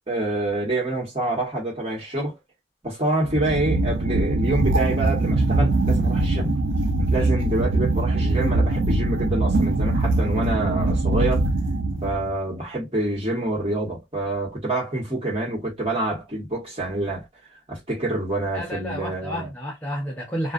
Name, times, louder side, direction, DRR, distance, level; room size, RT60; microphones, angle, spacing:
voice 1, 0.1-2.4 2.8-6.6 7.1-11.5 12.0-17.3 17.7-19.5, right 2 dB, 30° right, 1.2 m, -27 dB
sound 1, 3.2-12.3, right 2 dB, 80° right, 0.4 m, -22 dB
voice 2, 7.0-7.3 18.5-20.5, equal, 10° left, 0.6 m, -31 dB
2.4 x 2.3 x 2.4 m
head